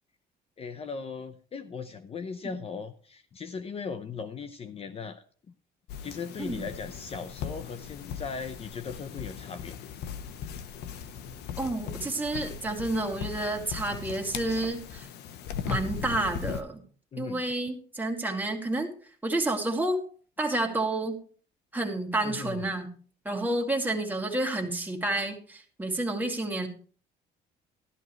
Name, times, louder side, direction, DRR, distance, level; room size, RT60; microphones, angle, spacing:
voice 1, 0.6-5.2 6.0-9.8 17.1-17.4 22.2-22.7, left 5 dB, 35° left, 11 dB, 0.8 m, -38 dB
sound 1, 5.9-16.6, left 7 dB, 80° left, 1.1 m, -38 dB
voice 2, 11.6-15.1 15.7-16.8 17.2-18.9 19.2-20.0 20.4-21.2 21.7-22.9 23.2-26.7, right 2 dB, 10° right, 2 dB, 2.5 m, -30 dB
14.0 x 12.0 x 3.2 m, 0.43 s
cardioid pair, 110°, 17 cm